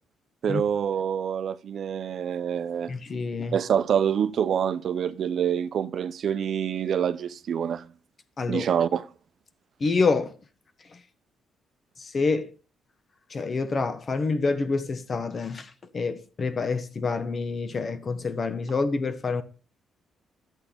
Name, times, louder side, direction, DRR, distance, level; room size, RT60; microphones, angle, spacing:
voice 1, 0.4-3.0 3.5-7.9 8.5-9.1, right 8 dB, 60° right, 0.6 m, -26 dB
voice 2, 2.9-3.6 8.4-8.6 9.8-10.3 12.0-12.5 13.3-19.4, left 4 dB, 40° left, 1.3 m, -27 dB
11.5 x 8.1 x 3.5 m
cardioid pair, 90°, 0 cm